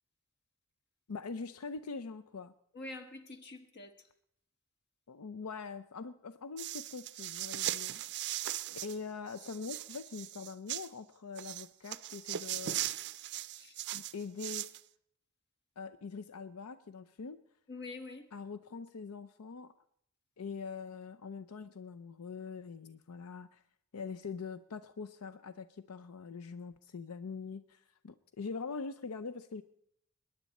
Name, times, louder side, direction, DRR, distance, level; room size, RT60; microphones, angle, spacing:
voice 1, 1.1-2.5 5.1-8.5 8.8-12.8 13.9-14.7 15.8-17.4 18.3-19.7 20.4-23.6 23.9-29.6, left 5 dB, 90° left, 11 dB, 0.5 m, -43 dB
voice 2, 2.7-4.1 13.5-13.8 17.7-18.3, left 2 dB, 50° left, 8 dB, 1.5 m, -46 dB
sound 1, 6.6-9.0 9.3-10.9 11.4-14.8, right 13 dB, 50° right, 0.4 m, -39 dB
22.0 x 10.5 x 4.2 m, 0.71 s
head